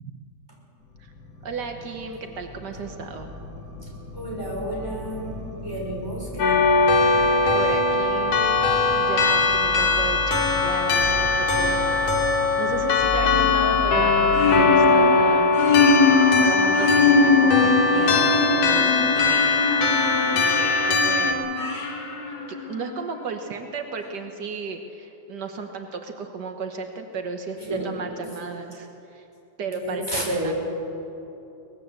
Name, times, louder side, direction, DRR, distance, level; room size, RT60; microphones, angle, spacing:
sound 1, 0.9-14.9, right 2 dB, 35° left, 1.8 m, -36 dB
voice 1, 1.4-3.3 7.5-8.4 9.0-12.0 12.6-15.6 16.4-19.5 20.3-21.5 22.7-29.3 29.6-30.5, right 5 dB, 75° right, 5 dB, 0.9 m, -34 dB
voice 2, 4.1-6.6 27.6-28.3 29.8-30.8, equal, 5° right, -3 dB, 5.6 m, -31 dB
sound 2, 6.4-21.3, left 4 dB, 85° left, 3.9 m, -20 dB
sound 3, 13.2-23.0, left 4 dB, 70° left, 4.1 m, -23 dB
23.5 x 19.5 x 8.0 m, 2.9 s
omnidirectional pair, 3.5 m